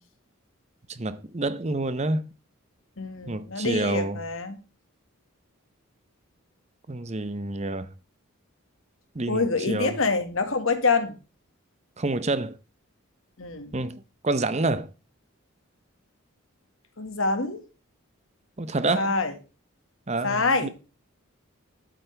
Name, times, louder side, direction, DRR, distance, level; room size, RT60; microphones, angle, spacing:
voice 1, 0.9-2.3 3.3-4.2 6.9-7.9 9.1-10.0 12.0-12.6 13.7-14.9 18.6-19.1 20.1-20.7, right 2 dB, 30° right, 0.7 m, -28 dB
voice 2, 3.0-4.6 9.3-11.1 13.4-13.7 17.0-17.6 18.9-19.3 20.2-20.7, left 4 dB, 70° left, 1.8 m, -26 dB
11.5 x 8.9 x 3.4 m
head